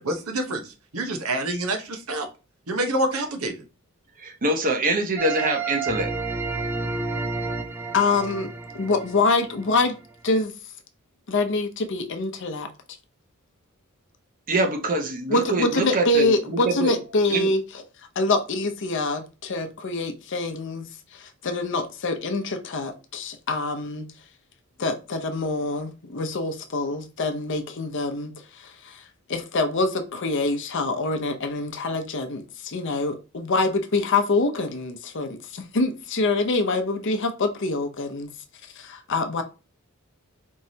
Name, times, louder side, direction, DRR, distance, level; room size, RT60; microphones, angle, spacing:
voice 1, 0.0-2.3 2.7-3.6, right 1 dB, 85° right, 1.0 m, -27 dB
voice 2, 4.2-6.1 14.5-16.9 17.3-17.5, right 2 dB, 40° right, 0.8 m, -24 dB
sound 1, 5.2-10.0, right 4 dB, 10° right, 0.4 m, -30 dB
voice 3, 7.9-8.5 8.7-10.0 10.2-10.5 11.3-12.7 15.3-17.8 18.2-24.1 24.8-29.0 29.3-38.3 38.8-39.4, left 3 dB, 60° left, 0.7 m, -25 dB
4.5 x 3.1 x 2.7 m
head